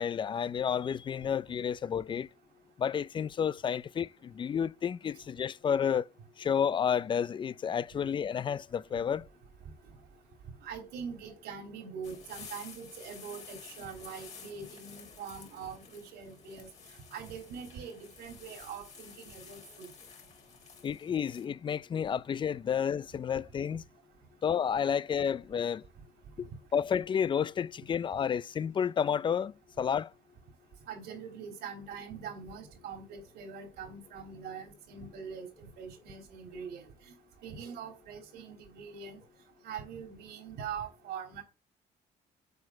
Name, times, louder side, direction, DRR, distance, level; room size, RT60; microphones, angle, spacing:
voice 1, 0.0-2.3 2.8-6.1 6.4-9.2 20.8-23.8 24.4-25.8 26.4-30.1, left 7 dB, 30° left, 0.4 m, -31 dB
voice 2, 10.6-16.7 17.1-19.9 30.9-36.9 37.4-39.2 39.6-41.4, right 6 dB, 80° right, 3.5 m, -43 dB
sound 1, 12.0-21.5, left 6 dB, 45° left, 2.9 m, -52 dB
8.0 x 4.7 x 7.3 m
cardioid pair, 110°, 17 cm